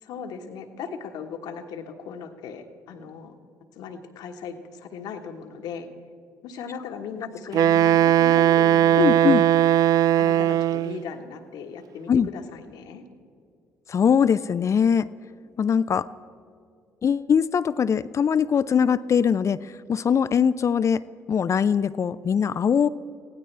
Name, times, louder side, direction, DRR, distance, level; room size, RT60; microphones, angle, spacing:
voice 1, 0.0-3.3 3.7-5.9 6.4-9.3 10.2-13.0, left 6 dB, 70° left, 4 dB, 1.4 m, -37 dB
Wind instrument woodwind instrument, 7.5-11.0, right 11 dB, 55° right, 0.4 m, -18 dB
voice 2, 9.0-9.4 12.1-12.3 13.9-15.1 15.6-16.1 17.0-22.9, left 7 dB, 45° left, 15 dB, 0.5 m, -22 dB
23.0 x 16.0 x 3.4 m, 2.4 s
hypercardioid pair, 50°, 7 cm